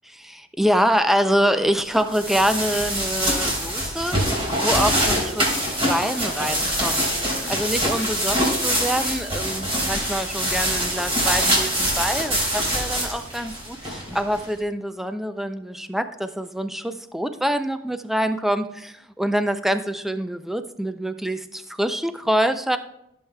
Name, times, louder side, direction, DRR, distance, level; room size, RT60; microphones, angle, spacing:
voice 1, 0.2-4.1 4.6-22.8, equal, ahead, 9 dB, 0.3 m, -25 dB
sound 1, 1.9-14.4, equal, 30° right, 3.1 m, -24 dB
14.5 x 7.1 x 2.2 m, 0.83 s
head